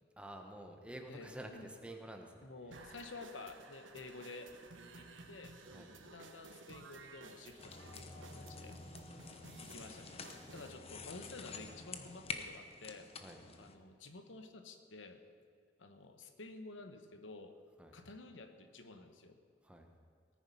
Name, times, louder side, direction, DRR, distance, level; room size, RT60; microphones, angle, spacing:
voice 1, 0.2-2.4 5.7-5.9 9.1-9.7 13.2-13.4 17.8-17.9 19.6-19.9, right 1 dB, 5° right, 3 dB, 1.2 m, -50 dB
voice 2, 1.1-1.7 2.4-4.5 5.0-5.6 6.0-8.8 9.3-10.2 10.5-13.1 13.6-15.2 15.8-17.5 17.9-19.4, left 3 dB, 90° left, 7 dB, 1.1 m, -51 dB
sound 1, 2.7-10.7, right 3 dB, 85° right, 1.2 m, -55 dB
sound 2, 7.6-13.8, left 4 dB, 35° left, 0.9 m, -48 dB
17.5 x 9.6 x 5.7 m, 2.2 s
head